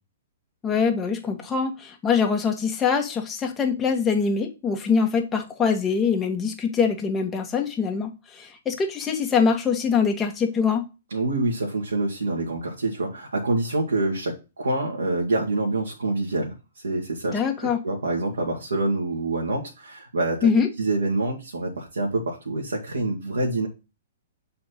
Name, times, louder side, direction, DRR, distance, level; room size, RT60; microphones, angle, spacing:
voice 1, 0.6-10.8 17.3-17.8 20.4-20.7, left 6 dB, 15° left, 2 dB, 1.5 m, -23 dB
voice 2, 11.1-20.5 20.8-23.7, right 2 dB, 70° right, -2 dB, 1.7 m, -26 dB
7.7 x 4.3 x 4.1 m, 0.28 s
figure-of-eight pair, 115°, 0 cm